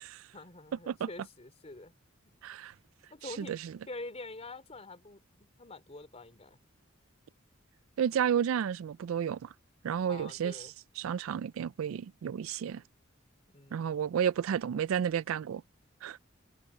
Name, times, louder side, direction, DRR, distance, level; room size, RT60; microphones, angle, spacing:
voice 1, 0.3-1.9 2.3-2.4 3.1-3.6 3.9-6.6 10.0-10.7 13.5-13.9, left 2 dB, 30° left, 3.3 m, -46 dB
voice 2, 2.4-2.7 3.2-3.7 8.0-9.5 9.8-10.7 11.0-12.8 13.7-15.6 16.0-16.2, right 8 dB, 85° right, 0.3 m, -32 dB
head